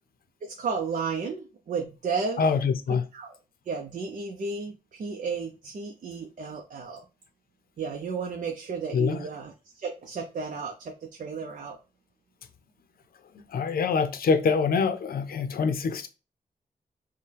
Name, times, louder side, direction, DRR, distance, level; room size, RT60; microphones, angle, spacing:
voice 1, 0.4-2.4 3.1-3.4 3.7-7.0 7.8-11.8, right 5 dB, 55° right, 0.6 m, -33 dB
voice 2, 2.4-3.0 8.9-9.3 13.5-16.1, left 5 dB, 80° left, 0.6 m, -25 dB
5.4 x 2.2 x 3.3 m
wide cardioid pair, 175°, 15 cm